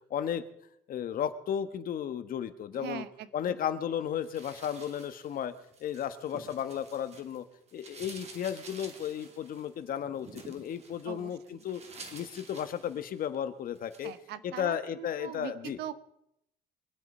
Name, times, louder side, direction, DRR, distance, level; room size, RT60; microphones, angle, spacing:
voice 1, 0.1-0.4 0.9-3.0 3.3-5.5 5.8-7.4 7.7-11.8 12.1-14.1 14.4-15.8, left 9 dB, 55° left, 11 dB, 1.2 m, -34 dB
voice 2, 2.8-3.6 11.1-11.6 14.0-15.9, right 11 dB, 75° right, 14 dB, 1.0 m, -42 dB
sound 1, 4.2-7.4 7.7-13.4 13.7-14.2, right 3 dB, 40° right, 2.4 m, -51 dB
23.0 x 8.2 x 5.4 m, 0.77 s
cardioid pair, 110°, 17 cm